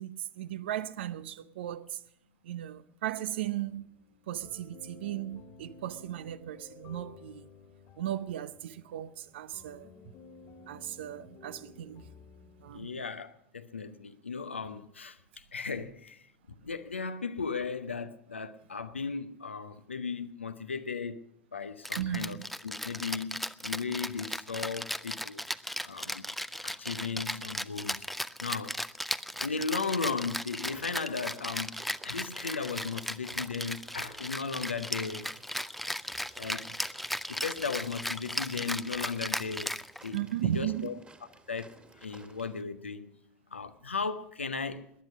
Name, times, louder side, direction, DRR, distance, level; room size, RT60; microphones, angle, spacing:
voice 1, 0.0-2.0 2.4-3.9 4.3-7.5 8.0-9.9 10.6-12.0 12.6-13.0 22.0-22.4 40.1-40.9, right 12 dB, 65° right, 0.6 m, -36 dB
sound 1, 3.5-12.8, left 4 dB, 50° left, 1.9 m, -54 dB
voice 2, 12.7-16.3 16.6-21.2 21.5-22.4 22.6-25.4 25.8-26.3 26.6-28.1 28.4-28.8 29.4-35.3 36.4-36.7 37.3-39.8 40.0-41.0 41.5-43.1 43.5-44.9, left 5 dB, 85° left, 0.7 m, -36 dB
Rattle (instrument), 21.8-40.3, equal, ahead, 0.5 m, -36 dB
sound 2, 30.6-42.6, right 3 dB, 20° right, 1.8 m, -57 dB
18.5 x 10.5 x 6.2 m
figure-of-eight pair, 70°, 6 cm